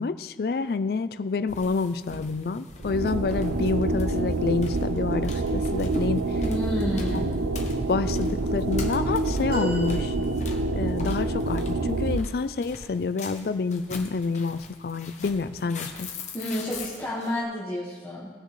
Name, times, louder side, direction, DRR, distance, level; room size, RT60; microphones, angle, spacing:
voice 1, 0.0-6.4 7.1-7.2 7.9-10.1 10.7-16.2, left 4 dB, 55° left, 13 dB, 0.4 m, -28 dB
sound 1, 1.5-17.3, left 2 dB, 40° left, 0.9 m, -39 dB
sound 2, 2.8-12.2, right 2 dB, 85° right, 0.5 m, -27 dB
voice 2, 6.4-7.3 16.3-18.3, equal, 15° left, -8 dB, 1.5 m, -30 dB
sound 3, 9.5-10.9 13.3-13.5 14.8-14.9, left 1 dB, 65° right, 3.6 m, -37 dB
18.0 x 6.6 x 3.2 m, 1.5 s
head